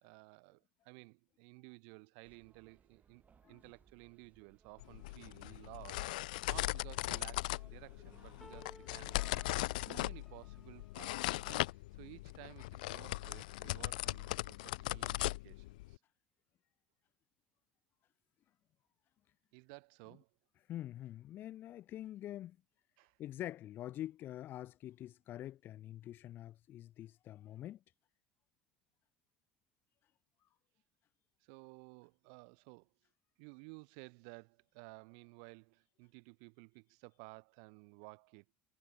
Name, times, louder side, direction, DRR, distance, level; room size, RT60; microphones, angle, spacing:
voice 1, 0.0-9.5 9.8-14.6 14.9-16.0 19.5-20.3 23.0-23.2 31.4-32.9 33.4-38.4, right 40 dB or more, 70° right, 1.4 m, -55 dB
sound 1, 2.2-9.2, right 7 dB, 35° right, 4.0 m, -69 dB
sound 2, 4.8-16.0, left 19 dB, 75° left, 0.4 m, -39 dB
sound 3, 8.4-11.3, equal, 5° left, 1.4 m, -59 dB
voice 2, 20.7-22.6 23.2-27.8, left 13 dB, 50° left, 1.6 m, -46 dB
hypercardioid pair, 70°, 4 cm